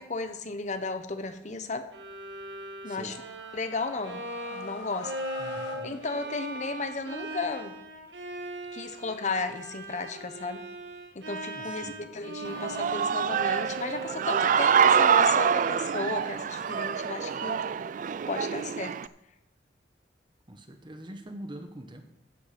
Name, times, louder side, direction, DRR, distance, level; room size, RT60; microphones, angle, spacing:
voice 1, 0.0-1.9 2.8-3.1 3.5-4.2 4.5-5.1 5.8-7.7 8.7-10.6 11.1-17.6 18.3-19.0, left 3 dB, 40° left, 9 dB, 0.9 m, -34 dB
Bowed string instrument, 1.9-18.0, right 1 dB, 75° right, 1.5 m, -40 dB
voice 2, 2.8-3.2 5.4-5.9 11.5-12.1 20.5-22.0, right 1 dB, 25° right, 6 dB, 1.0 m, -44 dB
sound 1, 3.1-6.9, left 2 dB, 75° left, 1.8 m, -44 dB
Human voice / Cheering, 12.5-19.1, right 7 dB, 45° right, 0.3 m, -25 dB
15.0 x 5.7 x 5.9 m, 0.85 s
head